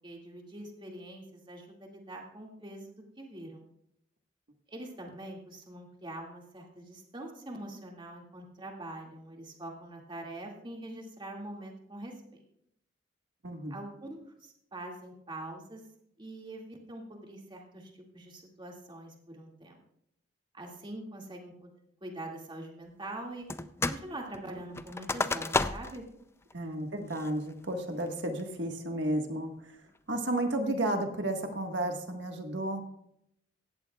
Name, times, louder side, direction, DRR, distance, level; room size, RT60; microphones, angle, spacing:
voice 1, 0.0-3.7 4.7-12.4 13.7-15.8 16.2-19.8 20.5-21.7 22.0-23.5 23.9-26.0, right 1 dB, 25° right, 0 dB, 2.2 m, -44 dB
voice 2, 13.4-13.8 26.5-29.8 30.1-33.0, right 1 dB, 70° right, 4 dB, 1.5 m, -32 dB
sound 1, 23.5-24.1 24.3-26.0 26.5-26.6 27.1-27.5 28.0-28.4, left 3 dB, 15° left, 0.4 m, -32 dB
17.0 x 14.0 x 2.4 m, 0.75 s
head